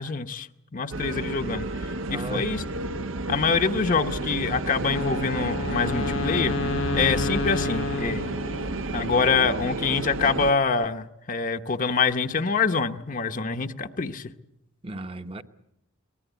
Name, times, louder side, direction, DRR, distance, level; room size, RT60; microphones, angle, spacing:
voice 1, 0.0-2.6 3.3-6.6 6.9-8.3 8.9-14.3, left 5 dB, 40° left, 0.9 m, -25 dB
sound 1, 0.9-10.5, right 2 dB, 75° right, 1.0 m, -31 dB
voice 2, 2.1-2.4 6.7-7.1 14.8-15.4, right 2 dB, 30° right, 1.0 m, -36 dB
Wind instrument woodwind instrument, 4.8-9.0, left 4 dB, 80° left, 0.8 m, -30 dB
23.5 x 19.5 x 8.2 m
head